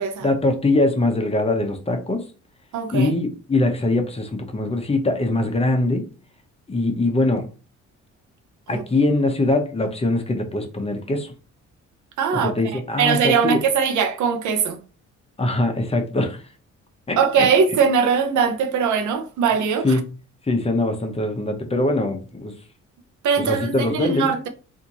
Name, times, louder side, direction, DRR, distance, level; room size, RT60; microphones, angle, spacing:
voice 1, 0.2-2.2 2.9-6.0 6.7-7.5 8.7-11.3 12.3-13.6 15.4-16.4 17.1-17.5 19.8-20.1 20.5-22.5 23.4-24.3, left 2 dB, 20° left, 0.8 m, -22 dB
voice 2, 2.7-3.1 8.7-8.8 12.2-14.8 17.2-20.0 23.2-24.5, right 6 dB, 75° right, 0.7 m, -21 dB
3.5 x 2.7 x 2.9 m
cardioid pair, 90°, 30 cm